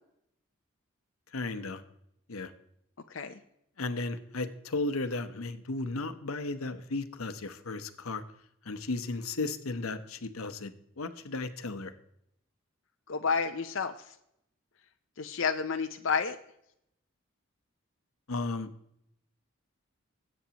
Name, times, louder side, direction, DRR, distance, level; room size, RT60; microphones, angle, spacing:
voice 1, 1.3-1.8 2.3-2.5 3.8-8.2 8.6-11.9 18.3-18.7, left 3 dB, 90° left, 10 dB, 1.0 m, -35 dB
voice 2, 3.1-3.4 13.1-14.1 15.2-16.4, left 5 dB, 65° left, 5 dB, 0.6 m, -30 dB
21.0 x 8.8 x 2.9 m, 0.76 s
head